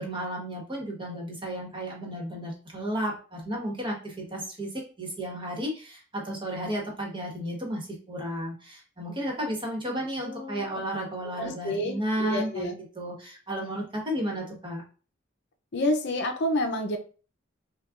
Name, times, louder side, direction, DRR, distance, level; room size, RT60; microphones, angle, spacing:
voice 1, 0.0-12.7 12.9-14.8, equal, 25° right, -1 dB, 1.2 m, -33 dB
voice 2, 9.9-10.6 11.4-12.7 15.7-17.0, left 1 dB, 60° left, 4 dB, 0.6 m, -29 dB
6.3 x 2.3 x 2.5 m, 0.38 s
head